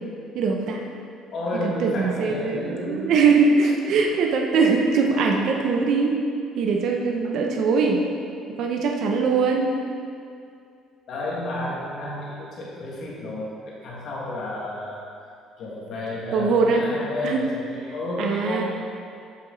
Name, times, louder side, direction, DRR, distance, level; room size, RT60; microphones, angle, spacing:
voice 1, 0.3-0.8 1.6-6.2 6.6-8.0 8.6-9.7 16.3-16.9 17.2-17.4 18.2-18.6, right 4 dB, 55° right, 1 dB, 0.7 m, -21 dB
voice 2, 1.3-3.1 11.1-15.0 15.6-18.6, left 1 dB, 45° left, -5 dB, 1.9 m, -31 dB
7.7 x 7.2 x 3.9 m, 2.4 s
cardioid pair, 160°, 0 cm